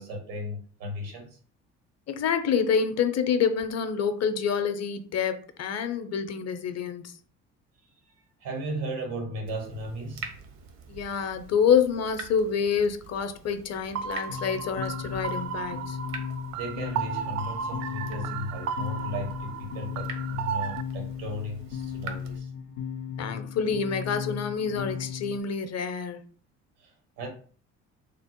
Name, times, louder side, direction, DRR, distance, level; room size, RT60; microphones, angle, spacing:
voice 1, 0.0-1.4 8.4-10.3 16.5-22.5 26.8-27.3, equal, 80° right, 1.1 m, -36 dB
voice 2, 2.1-7.2 10.9-16.0 23.2-26.2, left 6 dB, 45° left, 0.6 m, -27 dB
Water tap faucet / Drip, 9.5-22.4, right 4 dB, 65° right, 0.8 m, -46 dB
sound 1, 14.0-20.8, right 7 dB, 50° right, 0.4 m, -34 dB
sound 2, 14.3-25.4, left 7 dB, 90° left, 0.5 m, -36 dB
3.5 x 2.0 x 2.9 m
hypercardioid pair, 55°, 37 cm